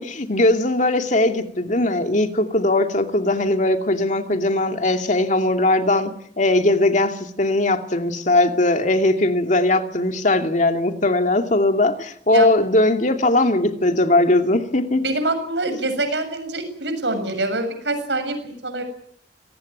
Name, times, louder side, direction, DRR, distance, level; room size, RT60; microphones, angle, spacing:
voice 1, 0.0-15.0, left 2 dB, 45° left, 6 dB, 2.6 m, -19 dB
voice 2, 15.0-18.8, right 2 dB, 80° right, 8 dB, 7.2 m, -25 dB
27.5 x 19.5 x 9.4 m, 0.68 s
head